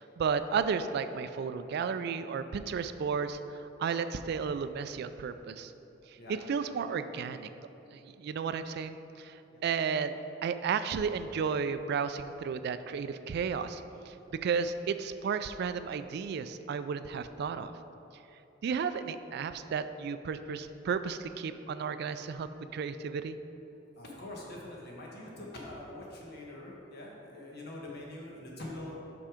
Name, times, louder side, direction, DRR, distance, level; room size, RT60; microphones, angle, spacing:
voice 1, 0.0-5.7 6.3-7.5 7.9-14.1 14.4-17.7 18.6-23.4, right 6 dB, 60° right, 11 dB, 0.3 m, -33 dB
voice 2, 24.0-29.0, left 1 dB, 60° left, -3 dB, 1.4 m, -44 dB
6.1 x 5.6 x 4.9 m, 2.9 s
head